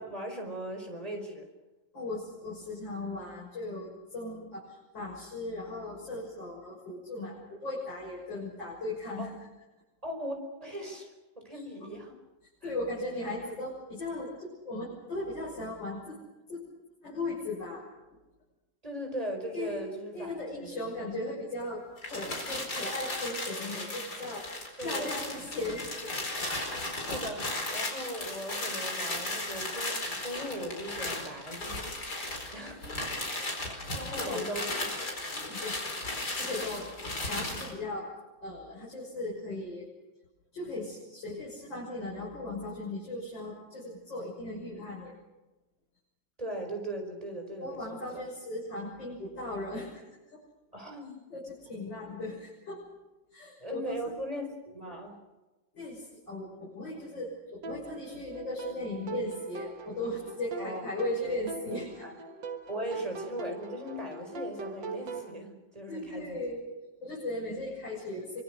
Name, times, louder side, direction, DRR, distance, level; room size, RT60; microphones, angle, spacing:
voice 1, 0.0-1.5 9.2-9.3 10.0-12.1 12.6-12.7 18.8-20.8 24.8-25.1 27.0-31.9 32.5-32.9 33.4-33.5 33.9-34.9 46.4-48.2 50.7-51.2 53.6-55.2 60.6-60.8 62.0-62.1 62.7-66.4, right 1 dB, 20° right, 3 dB, 5.2 m, -39 dB
voice 2, 1.9-9.3 11.5-12.0 12.6-16.2 16.5-16.7 17.0-17.8 19.5-19.8 20.1-24.5 24.8-26.3 32.4-33.1 33.9-34.5 35.3-35.8 36.1-36.9 37.3-38.1 38.4-39.9 40.5-45.1 47.6-50.0 50.3-50.4 51.3-52.8 53.3-54.1 55.7-62.0 65.9-66.7 67.0-68.4, left 2 dB, 90° left, -4 dB, 7.1 m, -37 dB
sound 1, 22.0-37.7, left 2 dB, 60° left, 5.2 m, -36 dB
sound 2, 57.6-65.3, right 3 dB, 80° right, 2.2 m, -41 dB
25.0 x 24.0 x 6.5 m, 1.1 s
omnidirectional pair, 1.9 m